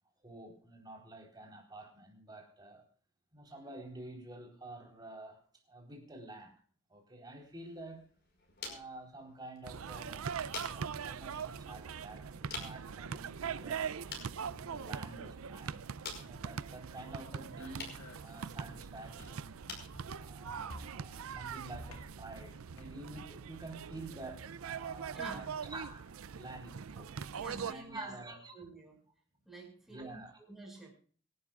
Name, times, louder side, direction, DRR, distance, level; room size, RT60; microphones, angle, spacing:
voice 1, 0.2-2.9 3.3-5.4 5.7-6.5 6.9-8.1 8.6-13.8 14.3-15.9 16.1-19.6 20.1-27.1 27.6-28.5 29.9-30.4, right 2 dB, 20° right, 1 dB, 4.1 m, -49 dB
sound 1, 7.4-22.4, left 4 dB, 50° left, 5.4 m, -51 dB
sound 2, 9.6-27.7, right 7 dB, 75° right, 0.5 m, -42 dB
sound 3, 16.2-23.3, left 1 dB, 75° left, 2.3 m, -55 dB
voice 2, 25.1-25.5 27.4-29.0 29.5-30.9, right 2 dB, ahead, 0 dB, 6.0 m, -49 dB
26.0 x 12.0 x 2.5 m, 0.43 s
head